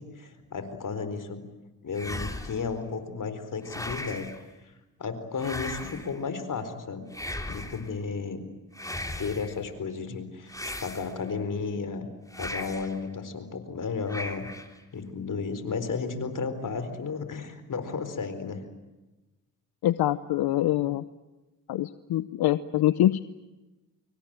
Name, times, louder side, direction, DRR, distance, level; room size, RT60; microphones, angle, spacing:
voice 1, 0.0-1.4 1.8-4.4 5.0-7.1 7.5-8.4 9.2-10.5 10.8-12.1 12.4-14.5 14.9-18.6, left 5 dB, 55° left, 10 dB, 4.4 m, -33 dB
sound 1, 1.9-2.7 3.6-4.4 5.4-6.2 7.1-7.9 8.7-9.6 10.5-11.4 12.3-13.0 14.1-14.8, left 1 dB, 10° left, 3.4 m, -37 dB
voice 2, 19.8-21.0 21.7-23.2, left 13 dB, 80° left, 14 dB, 0.8 m, -24 dB
26.0 x 23.5 x 9.1 m, 1.1 s
cardioid pair, 65°, 37 cm